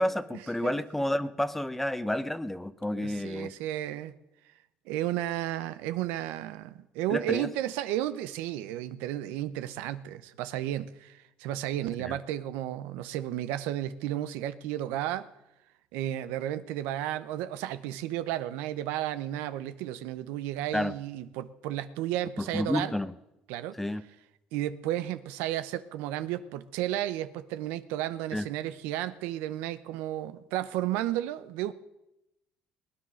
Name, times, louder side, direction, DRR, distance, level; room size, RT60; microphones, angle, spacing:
voice 1, 0.0-3.5 7.1-7.5 12.0-12.2 20.7-20.9 22.4-23.1 23.7-24.0 28.3-28.5, left 1 dB, 5° left, 0.7 m, -30 dB
voice 2, 3.0-4.2 4.9-15.3 15.9-23.0 23.5-23.8 24.5-31.7, right 13 dB, 90° right, 0.8 m, -33 dB
20.0 x 9.8 x 6.3 m
cardioid pair, 115°, 3 cm